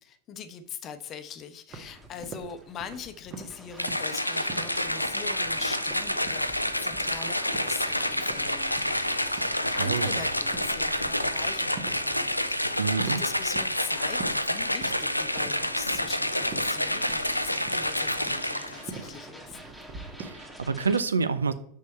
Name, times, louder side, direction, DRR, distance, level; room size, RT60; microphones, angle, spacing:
voice 1, 0.0-19.6, left 7 dB, 30° left, 10 dB, 0.8 m, -42 dB
sound 1, 1.7-21.0, right 1 dB, ahead, 1.4 m, -47 dB
sound 2, 1.7-20.3, right 4 dB, 35° right, 1.4 m, -46 dB
sound 3, 3.8-18.9, left 1 dB, 90° left, 0.4 m, -28 dB
voice 2, 9.8-10.2 12.8-13.2 20.2-21.5, right 5 dB, 75° right, 13 dB, 0.6 m, -27 dB
6.7 x 6.3 x 4.1 m, 0.68 s
figure-of-eight pair, 90°, 0 cm